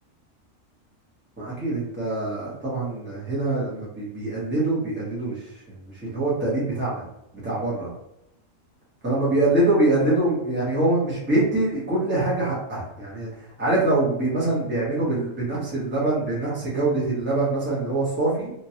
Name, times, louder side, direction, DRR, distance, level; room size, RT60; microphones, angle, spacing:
voice 1, 1.4-7.0 7.4-7.9 9.0-13.3 13.6-18.5, right 2 dB, 10° right, -7 dB, 0.9 m, -24 dB
3.1 x 2.5 x 2.8 m, 0.84 s
omnidirectional pair, 1.4 m